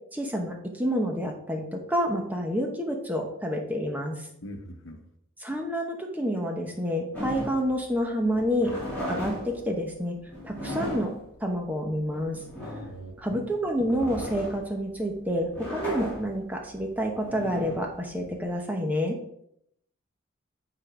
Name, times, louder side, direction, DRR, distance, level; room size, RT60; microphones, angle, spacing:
voice 1, 0.1-4.3 5.4-8.7 9.1-10.1 10.4-11.1 11.4-12.4 13.2-19.2, equal, 10° right, 1 dB, 0.9 m, -28 dB
voice 2, 4.4-5.0 12.8-13.4, equal, 70° left, 5 dB, 1.0 m, -42 dB
sound 1, 7.1-18.5, equal, 10° left, 2.9 m, -37 dB
9.7 x 3.9 x 4.9 m, 0.76 s
head